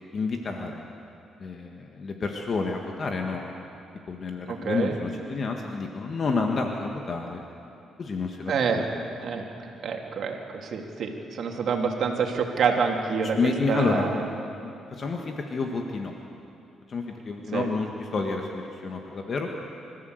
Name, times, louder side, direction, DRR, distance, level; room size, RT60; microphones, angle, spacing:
voice 1, 0.1-0.9 1.4-3.5 4.1-7.4 8.0-8.8 13.3-14.2 14.6-16.2 16.9-19.5, left 4 dB, 45° left, 2 dB, 1.7 m, -29 dB
voice 2, 4.5-5.0 8.5-8.8 9.2-9.5 9.8-14.2 17.5-17.7, right 5 dB, 65° right, 2 dB, 2.7 m, -27 dB
25.5 x 14.5 x 8.0 m, 2.7 s
cardioid pair, 90°, 0 cm